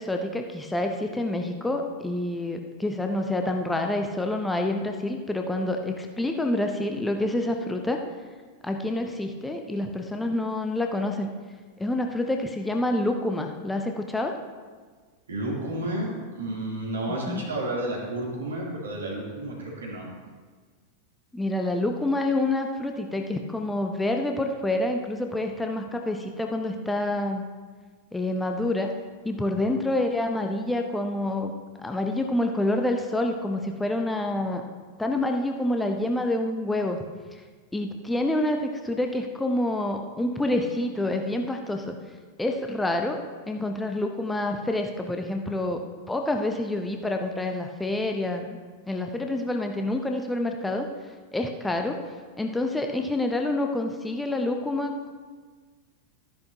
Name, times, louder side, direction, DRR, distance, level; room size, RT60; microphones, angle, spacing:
voice 1, 0.0-8.0 8.6-11.3 11.8-14.3 17.1-17.5 21.3-27.5 28.1-28.9 29.2-31.5 31.8-34.6 35.0-37.0 37.3-37.4 37.7-42.0 42.4-43.2 43.5-45.8 46.1-48.6 48.9-50.9 51.3-52.0 52.4-55.1, left 1 dB, 5° left, 4 dB, 0.7 m, -27 dB
voice 2, 15.3-20.0, right 1 dB, 70° right, -3 dB, 2.8 m, -31 dB
13.0 x 10.5 x 2.8 m, 1.5 s
figure-of-eight pair, 90°, 0 cm